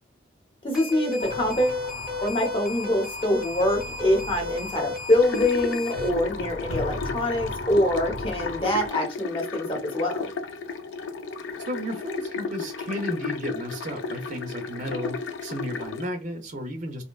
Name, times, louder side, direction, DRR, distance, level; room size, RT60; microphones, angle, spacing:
voice 1, 0.6-1.8 2.2-10.3, left 1 dB, 30° left, 0.8 m, -25 dB
sound 1, 0.7-6.1, left 3 dB, 5° right, 0.6 m, -34 dB
sound 2, 1.2-8.9, left 2 dB, 65° left, 0.8 m, -36 dB
sound 3, 5.2-16.1, left 4 dB, 80° left, 0.4 m, -34 dB
voice 2, 11.7-17.0, equal, 40° right, 0.4 m, -33 dB
2.6 x 2.1 x 2.2 m
head